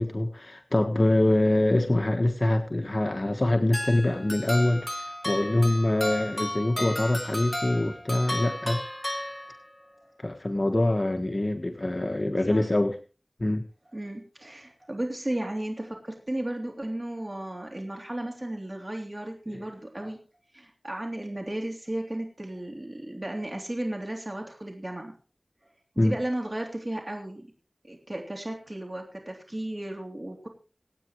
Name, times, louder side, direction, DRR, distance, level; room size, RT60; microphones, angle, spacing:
voice 1, 0.0-8.8 10.2-13.0 13.4-13.6 19.5-19.7 26.0-26.2, left 1 dB, 50° left, 5 dB, 1.4 m, -24 dB
sound 1, 3.7-9.9, left 1 dB, 15° left, 1.7 m, -34 dB
voice 2, 13.9-20.2 20.5-25.1 25.9-27.5 27.8-30.5, right 1 dB, 40° right, 2 dB, 3.2 m, -34 dB
27.0 x 9.1 x 3.1 m, 0.35 s
wide cardioid pair, 40°, 0 cm